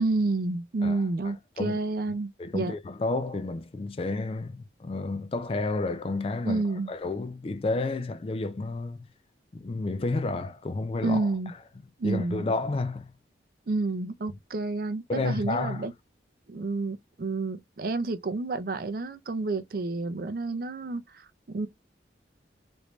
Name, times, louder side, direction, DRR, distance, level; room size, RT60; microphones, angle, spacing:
voice 1, 0.0-2.7 6.4-6.9 11.0-11.5 12.0-12.5 13.7-15.9 16.5-21.7, right 3 dB, 50° right, 0.4 m, -29 dB
voice 2, 1.2-1.8 2.4-6.6 6.9-9.1 9.5-11.3 12.0-13.1 15.1-15.9, left 3 dB, 30° left, 0.3 m, -31 dB
3.2 x 2.6 x 3.0 m
head